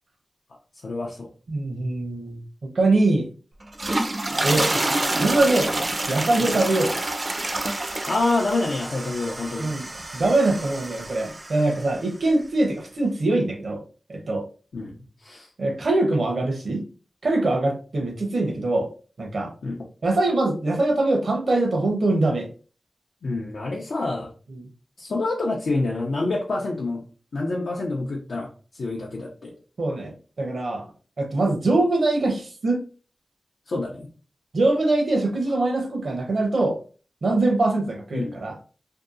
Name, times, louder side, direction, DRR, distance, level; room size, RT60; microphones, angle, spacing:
voice 1, 0.8-1.3 6.4-6.5 8.1-9.7 14.7-14.9 15.2-15.5 19.6-19.8 23.2-24.3 25.0-27.0 27.3-29.5 33.7-34.1 38.1-38.4, left 2 dB, 80° left, -2 dB, 0.5 m, -27 dB
voice 2, 1.5-3.3 4.4-4.7 5.2-5.7 6.1-6.9 9.6-9.9 10.1-13.8 14.1-14.4 15.6-16.8 17.2-18.9 19.2-19.5 20.0-22.5 24.6-24.7 29.8-30.9 31.2-32.8 34.5-36.8 37.2-38.6, right 2 dB, 75° right, 3 dB, 0.7 m, -23 dB
sound 1, 3.6-11.9, right 2 dB, 45° right, 0.3 m, -28 dB
2.7 x 2.3 x 2.4 m, 0.38 s
cardioid pair, 45°, 0 cm